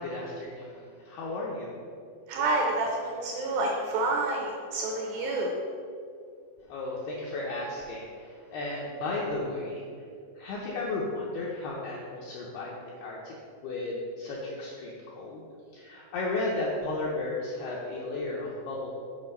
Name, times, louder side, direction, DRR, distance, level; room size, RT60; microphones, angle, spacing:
voice 1, 0.0-1.7 6.6-9.8 10.4-13.4 13.6-15.4 15.7-18.9, left 2 dB, 80° left, -4 dB, 2.3 m, -34 dB
voice 2, 2.3-5.5, right 2 dB, 80° right, -1 dB, 2.5 m, -28 dB
8.4 x 5.1 x 5.4 m, 2.4 s
omnidirectional pair, 5.6 m